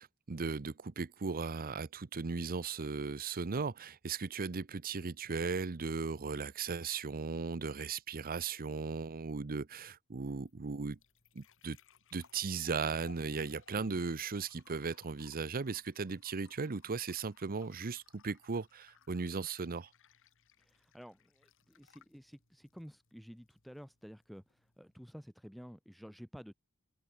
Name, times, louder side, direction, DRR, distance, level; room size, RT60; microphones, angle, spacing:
voice 1, 0.0-11.0 11.4-11.8 12.1-19.9, right 4 dB, 40° right, 0.7 m, -37 dB
sound 1, 10.1-25.1, left 5 dB, 60° left, 4.3 m, -65 dB
voice 2, 20.6-26.5, equal, ahead, 2.9 m, -52 dB
open air
head